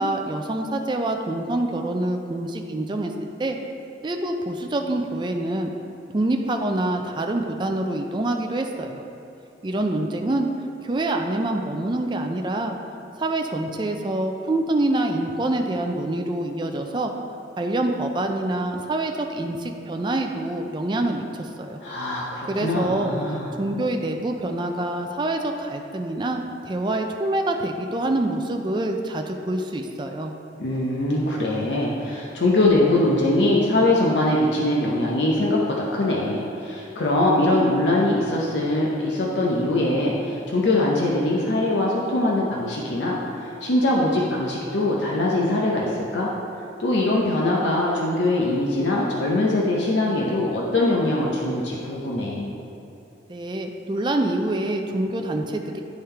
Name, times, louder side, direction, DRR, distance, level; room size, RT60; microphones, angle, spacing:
voice 1, 0.0-3.1 3.4-3.6 4.0-5.7 6.1-9.0 9.6-10.5 10.8-12.8 13.2-17.1 17.6-21.8 22.5-23.1 23.6-30.3 53.3-55.8, right 1 dB, 25° right, 3 dB, 0.4 m, -26 dB
voice 2, 21.8-23.5 30.6-46.3 46.8-52.6, left 1 dB, 80° left, -3 dB, 0.7 m, -22 dB
10.0 x 3.6 x 4.4 m, 2.9 s
head